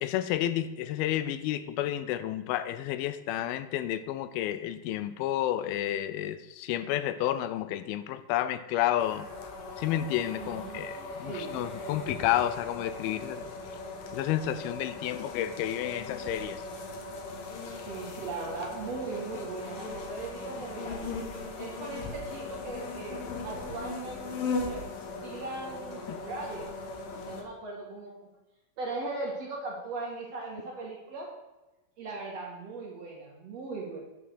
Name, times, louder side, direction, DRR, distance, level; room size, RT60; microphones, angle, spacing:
voice 1, 0.0-9.3 9.8-13.5 14.1-16.6 26.1-26.2, left 12 dB, 85° left, 13 dB, 2.4 m, -31 dB
sound 1, 9.0-27.4, left 3 dB, 70° left, 2.8 m, -39 dB
voice 2, 10.3-11.6 17.8-21.1 21.6-24.9 25.1-26.7 27.1-28.2 28.8-31.3 32.0-34.0, right 3 dB, 50° right, -2 dB, 2.4 m, -39 dB
9.2 x 6.1 x 6.4 m, 1.1 s
omnidirectional pair, 4.3 m